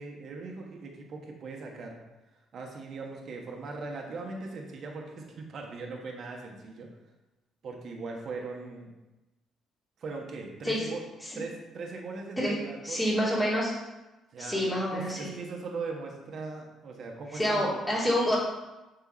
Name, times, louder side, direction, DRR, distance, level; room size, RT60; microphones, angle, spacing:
voice 1, 0.0-2.0 2.5-6.9 7.6-8.9 10.0-11.0 11.3-13.4 14.3-17.8, right 3 dB, 50° right, 0 dB, 1.5 m, -39 dB
voice 2, 12.8-13.7 14.4-15.3 17.3-18.4, equal, 5° left, -7 dB, 2.8 m, -27 dB
7.4 x 5.5 x 4.2 m, 1.1 s
cardioid pair, 110°, 0 cm